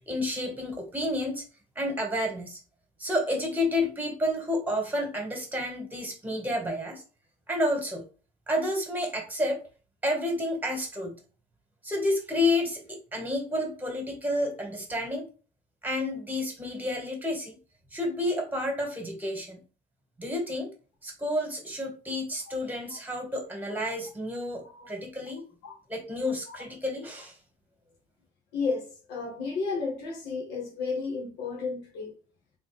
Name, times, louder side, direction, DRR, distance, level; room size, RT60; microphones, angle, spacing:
voice 1, 0.1-1.4 1.8-2.6 3.0-7.0 7.5-8.0 8.5-9.6 10.0-11.1 11.8-15.3 15.8-17.5 17.9-19.6 20.2-20.7 21.0-25.4 25.9-27.3, left 1 dB, 10° right, 1.8 m, -30 dB
voice 2, 28.5-32.1, left 4 dB, 85° left, 1.6 m, -33 dB
3.9 x 3.6 x 3.5 m
cardioid pair, 110°, 17 cm